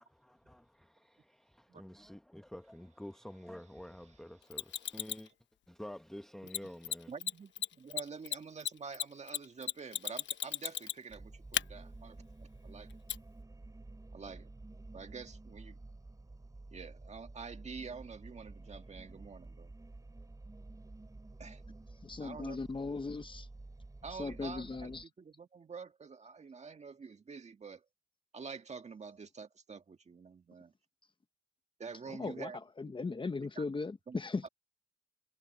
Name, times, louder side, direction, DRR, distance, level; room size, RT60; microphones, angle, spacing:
voice 1, 0.3-5.3 5.7-7.1, left 1 dB, ahead, 1.0 m, -49 dB
Mechanisms, 4.5-5.3 6.5-6.6 6.8-6.9 7.2-7.3 7.6-11.1 11.5-11.6 13.1-13.2, left 11 dB, 65° left, 1.1 m, -35 dB
voice 2, 7.1-12.9 14.1-14.5 14.9-15.8 16.7-19.7 21.4-21.6 22.2-22.6 24.0-27.9 28.3-30.7 31.8-32.6 33.6-33.7 34.1-34.2 34.4-34.5, right 5 dB, 35° right, 1.8 m, -47 dB
sound 1, 11.1-25.0, right 2 dB, 15° right, 6.1 m, -51 dB
voice 3, 22.0-23.5 24.2-25.0 32.1-32.5 32.8-34.5, left 4 dB, 25° left, 1.2 m, -38 dB
cardioid pair, 90°, 20 cm